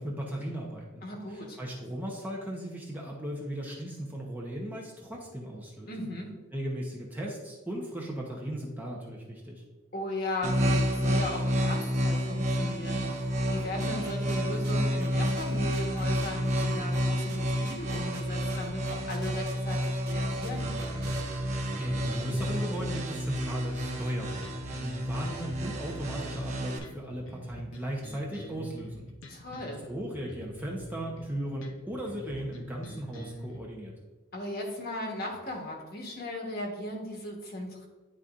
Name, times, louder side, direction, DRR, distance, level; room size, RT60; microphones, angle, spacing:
voice 1, 0.0-6.1 6.5-9.6 21.8-29.0 29.9-33.9, right 1 dB, 10° right, -2 dB, 0.8 m, -37 dB
voice 2, 1.0-1.6 5.9-6.4 9.9-21.1 29.3-29.8 34.3-37.9, left 1 dB, 50° left, 0 dB, 1.2 m, -37 dB
sound 1, 10.4-26.8, equal, 35° right, 0.8 m, -30 dB
sound 2, 13.6-21.2, right 4 dB, 50° right, 1.2 m, -47 dB
sound 3, 24.0-33.6, equal, 65° left, 0.9 m, -46 dB
10.0 x 4.0 x 2.5 m, 1.2 s
head